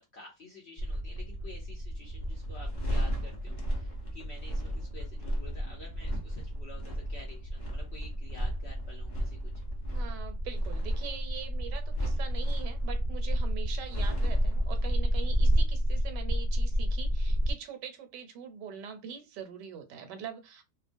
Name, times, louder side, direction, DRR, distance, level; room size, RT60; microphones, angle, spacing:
voice 1, 0.0-9.4, left 2 dB, 55° left, 0.7 m, -50 dB
sound 1, 0.8-17.5, equal, 85° left, 0.4 m, -31 dB
voice 2, 9.9-20.6, right 7 dB, 80° right, 1.3 m, -43 dB
2.9 x 2.1 x 2.5 m
omnidirectional pair, 1.9 m